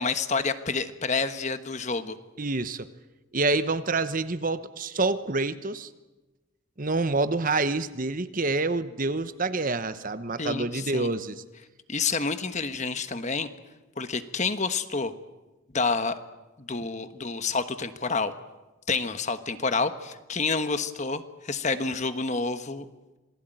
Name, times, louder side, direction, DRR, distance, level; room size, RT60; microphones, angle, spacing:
voice 1, 0.0-2.2 10.4-11.1 11.9-13.5 14.0-15.1 15.7-16.2 16.6-18.3 18.9-22.9, left 4 dB, 35° left, 10 dB, 1.3 m, -28 dB
voice 2, 2.4-2.9 3.3-5.9 6.8-11.4, right 3 dB, 40° right, 12 dB, 1.0 m, -27 dB
27.5 x 19.5 x 9.2 m, 1.1 s
head